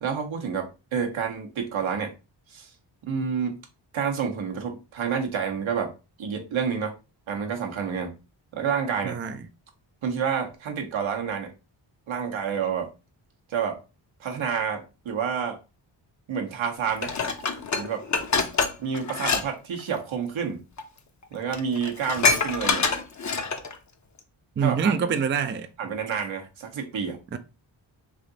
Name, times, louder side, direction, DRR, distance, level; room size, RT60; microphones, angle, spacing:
voice 1, 0.0-2.1 2.5-2.7 3.0-3.6 3.9-5.9 6.2-6.9 7.3-8.1 8.5-9.2 10.0-11.5 12.1-12.9 13.5-13.8 14.2-15.6 16.3-17.1 17.7-18.0 18.8-20.6 21.3-22.9 24.6-24.9 25.8-27.2, right 6 dB, 75° right, 1.0 m, -29 dB
voice 2, 9.0-9.4 24.6-25.7 27.3-27.4, right 6 dB, 25° right, 0.4 m, -25 dB
Dishes pots and pans, 17.0-19.4 19.7-20.0 20.8-20.9 21.2-21.3 21.5-23.7 24.2-24.3, left 4 dB, 35° left, 0.7 m, -25 dB
3.4 x 2.7 x 3.8 m
cardioid pair, 60°, 47 cm